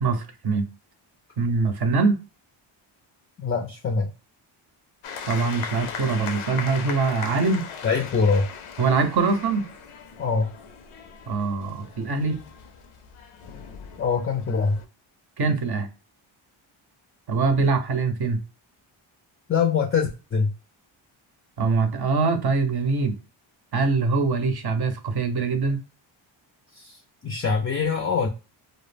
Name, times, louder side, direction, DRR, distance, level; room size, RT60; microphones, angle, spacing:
voice 1, 0.0-0.7 1.4-2.2 5.3-7.7 8.8-9.7 11.3-12.4 15.4-15.9 17.3-18.4 21.6-23.2 23.7-25.8, right 4 dB, 50° right, 0.7 m, -23 dB
voice 2, 3.4-4.1 7.8-8.5 10.2-10.5 14.0-14.8 19.5-20.5 26.7-28.3, left 5 dB, 30° left, 0.4 m, -24 dB
sound 1, 5.0-14.9, left 6 dB, 80° left, 0.6 m, -38 dB
2.1 x 2.1 x 3.3 m
cardioid pair, 85°, 49 cm